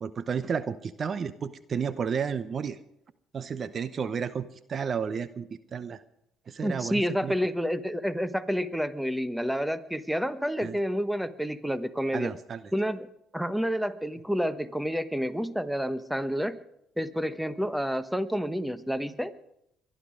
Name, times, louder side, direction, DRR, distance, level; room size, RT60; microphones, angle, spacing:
voice 1, 0.0-2.8 3.3-6.0 6.5-7.3 10.6-10.8 12.1-12.6, right 6 dB, 45° right, 14 dB, 0.8 m, -32 dB
voice 2, 6.6-12.3 12.7-13.1 13.3-16.6 17.0-19.3, equal, 5° right, 13 dB, 1.1 m, -29 dB
22.5 x 11.5 x 5.0 m, 0.77 s
hypercardioid pair, 60°, 0 cm